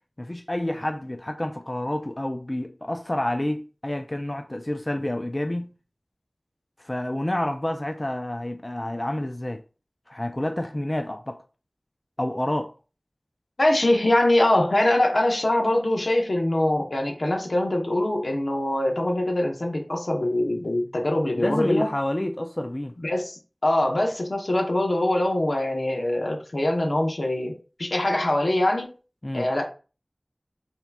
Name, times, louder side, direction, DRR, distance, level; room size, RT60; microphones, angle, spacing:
voice 1, 0.2-5.7 6.8-9.6 10.1-11.4 12.2-12.7 21.4-22.9 29.2-29.5, left 1 dB, 35° left, 0.3 m, -29 dB
voice 2, 13.6-21.9 23.0-27.5 27.8-28.9 29.3-29.6, left 1 dB, 85° left, 0.9 m, -23 dB
5.7 x 2.9 x 2.3 m
wide cardioid pair, 45°, 0 cm